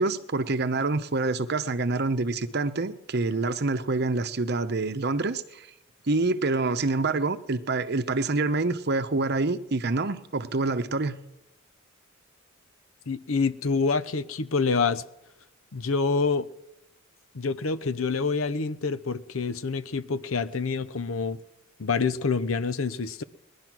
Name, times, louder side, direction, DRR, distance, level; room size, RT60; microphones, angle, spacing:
voice 1, 0.0-5.7 6.1-11.2, right 3 dB, 55° right, 0.9 m, -26 dB
voice 2, 13.1-15.0 15.7-16.5 17.3-21.4 21.8-23.2, left 4 dB, 90° left, 0.7 m, -27 dB
20.0 x 11.0 x 6.1 m
head